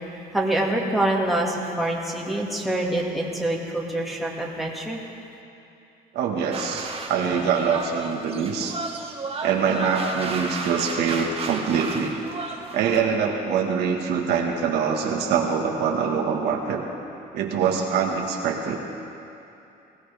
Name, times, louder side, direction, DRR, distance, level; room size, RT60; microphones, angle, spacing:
voice 1, 0.1-5.0, right 1 dB, ahead, -3 dB, 2.1 m, -25 dB
voice 2, 6.1-8.8 9.4-12.1 12.7-16.8 17.3-18.8, right 6 dB, 80° right, 1 dB, 1.6 m, -24 dB
sound 1, 6.5-13.0, right 3 dB, 35° right, 1.5 m, -33 dB
20.0 x 16.5 x 3.5 m, 2.8 s
cardioid pair, 110°, 17 cm